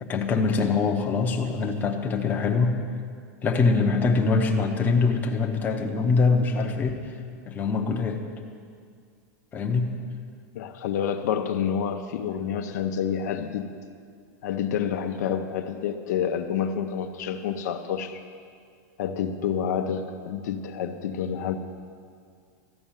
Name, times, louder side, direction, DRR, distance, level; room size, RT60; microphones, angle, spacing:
voice 1, 0.0-2.8 3.4-7.0 7.4-8.3 9.5-10.0, left 4 dB, 20° left, 2 dB, 0.8 m, -23 dB
voice 2, 10.5-13.7 14.4-18.2 19.0-21.6, left 8 dB, 70° left, 6 dB, 0.8 m, -28 dB
13.5 x 5.3 x 9.0 m, 2.2 s
supercardioid pair, 145°, 9 cm